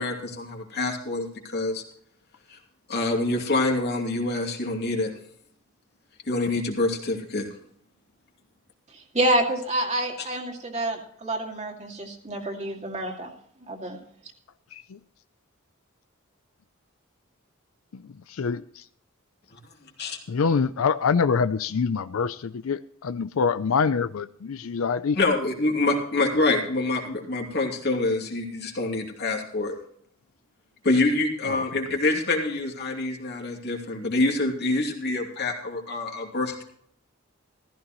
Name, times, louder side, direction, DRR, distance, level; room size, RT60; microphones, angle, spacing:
voice 1, 0.0-1.8 2.5-2.6 2.9-5.1 6.3-7.5 10.2-10.3 20.0-20.2 25.1-29.7 30.8-36.6, left 2 dB, 55° left, 1 dB, 2.7 m, -26 dB
voice 2, 9.1-13.3 13.7-14.0, right 1 dB, 35° right, 1 dB, 2.3 m, -27 dB
voice 3, 18.3-18.8 20.3-25.2 31.4-31.6, left 5 dB, 70° left, 13 dB, 0.5 m, -25 dB
15.0 x 14.0 x 3.1 m, 0.63 s
head